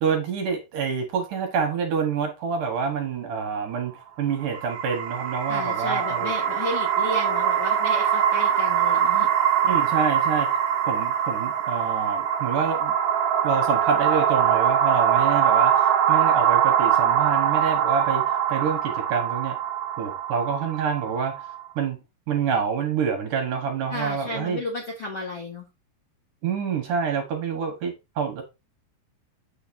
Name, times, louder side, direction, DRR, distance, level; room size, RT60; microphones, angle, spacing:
voice 1, 0.0-6.3 9.6-10.5 10.9-12.9 13.4-19.6 20.0-21.3 21.8-24.6 26.4-28.4, right 6 dB, 60° right, 2.5 m, -27 dB
sound 1, 4.4-21.6, right 9 dB, 85° right, 1.6 m, -23 dB
voice 2, 5.5-9.3 23.9-25.7, left 2 dB, 60° left, 1.6 m, -33 dB
8.0 x 6.8 x 2.7 m
omnidirectional pair, 4.6 m